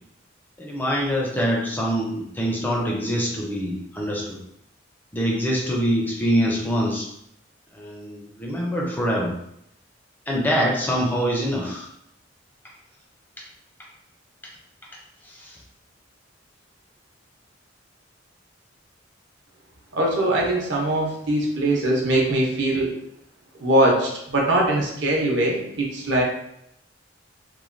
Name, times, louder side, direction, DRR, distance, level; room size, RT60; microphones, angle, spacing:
voice 1, 0.6-4.4 5.1-7.1 7.7-9.3 10.3-11.9 15.3-15.6, equal, 10° left, -2 dB, 0.4 m, -24 dB
voice 2, 19.9-22.9 23.6-26.2, right 1 dB, 70° right, -2 dB, 0.7 m, -21 dB
3.1 x 2.2 x 2.5 m, 0.75 s
head